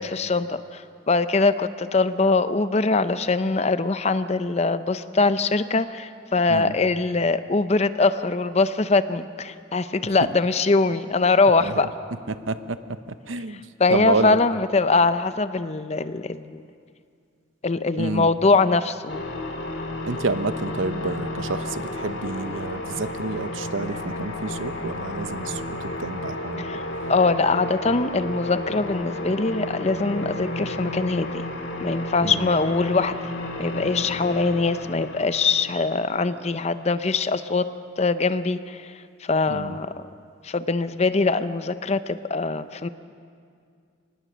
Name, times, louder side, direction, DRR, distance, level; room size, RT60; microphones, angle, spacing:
voice 1, 0.0-11.9 13.8-16.6 17.6-19.2 26.6-26.8 27.1-31.3 31.8-33.3 33.6-37.7 38.0-38.9 39.2-39.9 40.4-42.9, left 3 dB, 35° left, 12 dB, 0.6 m, -22 dB
voice 2, 12.3-12.8 13.3-13.6 13.9-14.4 18.0-18.3 20.1-25.6 26.0-26.6 32.2-32.4 39.5-39.8, right 3 dB, 80° right, 12 dB, 0.8 m, -28 dB
sound 1, 19.1-37.4, left 1 dB, 65° left, 2.3 m, -32 dB
24.5 x 19.5 x 6.2 m, 2.3 s
head